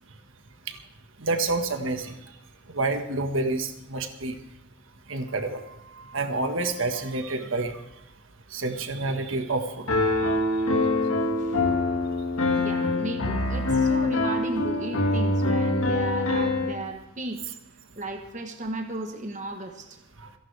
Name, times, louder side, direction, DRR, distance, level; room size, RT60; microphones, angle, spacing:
voice 1, 1.2-2.2 2.7-4.3 5.1-5.6 6.1-7.7 8.5-9.9 10.2-10.4 20.2-20.3, right 2 dB, 70° right, 6 dB, 1.5 m, -28 dB
Piano, 9.9-16.7, left 2 dB, 85° left, 2.1 m, -24 dB
voice 2, 12.6-17.4 18.0-20.0, right 2 dB, 35° right, 4 dB, 1.1 m, -35 dB
27.5 x 11.5 x 3.4 m, 0.86 s
head